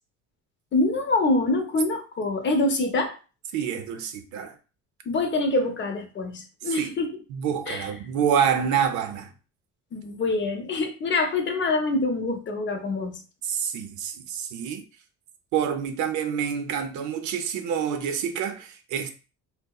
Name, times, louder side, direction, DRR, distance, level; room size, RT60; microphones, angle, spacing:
voice 1, 0.7-3.1 5.1-7.1 7.7-7.9 9.9-13.2, left 2 dB, 40° left, 0.6 m, -25 dB
voice 2, 3.5-4.6 6.6-7.0 7.3-9.3 13.4-14.8 15.5-19.1, right 8 dB, 70° right, 0.5 m, -27 dB
2.7 x 2.0 x 2.2 m
cardioid pair, 105°, 30 cm